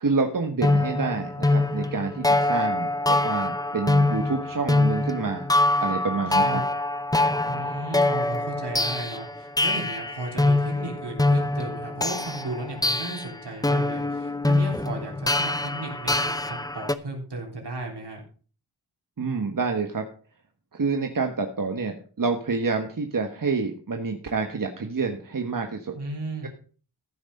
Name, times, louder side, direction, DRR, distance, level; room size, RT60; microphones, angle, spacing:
voice 1, 0.0-5.5 5.8-6.6 19.2-20.0 20.7-26.0, right 4 dB, 50° right, 4 dB, 1.3 m, -28 dB
sound 1, 0.6-16.9, left 2 dB, 10° left, 0.6 m, -24 dB
voice 2, 6.3-6.7 7.4-18.2 25.9-26.5, right 2 dB, 75° right, 0 dB, 3.6 m, -35 dB
14.5 x 6.2 x 5.3 m, 0.40 s
wide cardioid pair, 100°, 41 cm